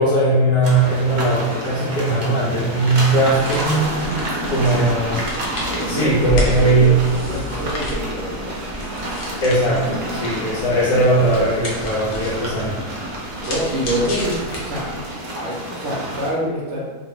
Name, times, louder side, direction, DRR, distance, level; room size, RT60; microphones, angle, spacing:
voice 1, 0.0-4.2 4.5-5.2 5.9-7.1 9.4-12.8, right 2 dB, 80° left, -7 dB, 1.1 m, -18 dB
sound 1, 0.6-16.3, right 1 dB, 90° right, 0.4 m, -29 dB
sound 2, 3.2-15.0, left 1 dB, 60° left, 0.9 m, -31 dB
voice 2, 5.7-8.4 13.5-14.9 15.3-16.8, equal, 60° right, -5 dB, 0.9 m, -26 dB
2.7 x 2.5 x 3.0 m, 1.4 s
omnidirectional pair, 1.5 m